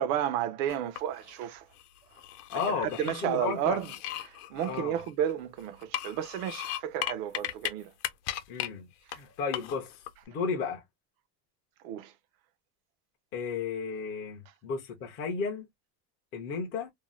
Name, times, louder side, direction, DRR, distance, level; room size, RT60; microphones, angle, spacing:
voice 1, 0.0-1.7 2.5-3.9 4.2-7.9 11.8-12.1, right 10 dB, 65° right, 0.6 m, -32 dB
sound 1, 0.7-1.3 1.8-3.2 3.7-5.4 5.8-7.7 8.0-8.7 9.1-9.2 9.5-10.1, left 13 dB, 70° left, 0.7 m, -36 dB
voice 2, 2.5-3.8 4.7-5.0 8.5-8.9 9.1-10.0 10.3-10.8 13.3-15.7 16.3-16.9, left 5 dB, 25° left, 0.4 m, -33 dB
2.6 x 2.0 x 3.0 m
cardioid pair, 170°, 48 cm